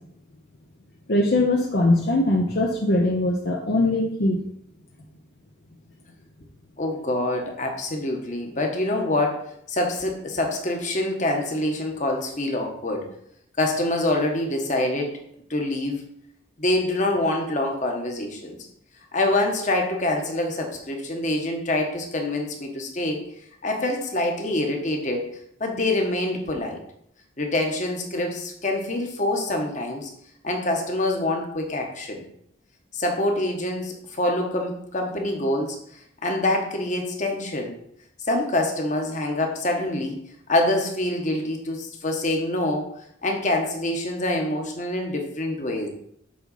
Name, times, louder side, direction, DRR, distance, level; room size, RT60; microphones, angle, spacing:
voice 1, 1.1-4.4, left 2 dB, 55° left, 0 dB, 0.7 m, -21 dB
voice 2, 6.8-13.1 13.6-15.1 15.5-16.0 16.6-18.6 19.1-23.2 23.6-25.3 25.6-26.8 27.4-30.1 30.4-32.2 32.9-35.8 36.2-37.8 38.3-40.2 40.5-42.9 43.2-45.9, left 1 dB, 40° left, 2 dB, 1.3 m, -25 dB
7.8 x 3.9 x 5.5 m, 0.71 s
head